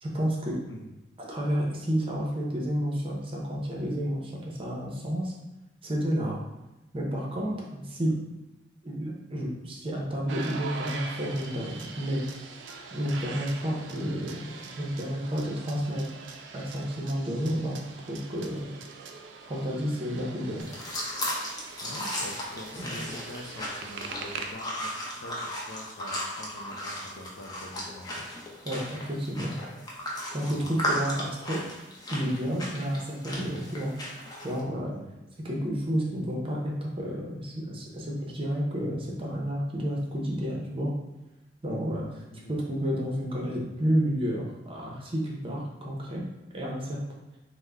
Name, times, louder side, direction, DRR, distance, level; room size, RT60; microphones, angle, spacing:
voice 1, 0.0-0.6 1.2-5.3 5.8-6.4 6.9-8.2 8.8-12.2 12.9-16.1 16.5-18.7 19.5-20.6 22.7-23.0 28.7-29.5 30.3-31.6 32.1-33.9 34.4-34.9 35.4-40.9 41.6-42.2 42.5-46.2 46.5-47.0, equal, 30° right, -2 dB, 0.6 m, -30 dB
sound 1, 10.3-24.5, right 4 dB, 80° right, 0.3 m, -43 dB
sound 2, 20.6-34.6, equal, 20° left, 0.6 m, -36 dB
voice 2, 21.8-28.3 30.5-30.7 34.9-35.1 42.3-42.6, left 1 dB, 85° left, 3 dB, 0.5 m, -44 dB
3.5 x 2.1 x 3.3 m, 1.0 s
head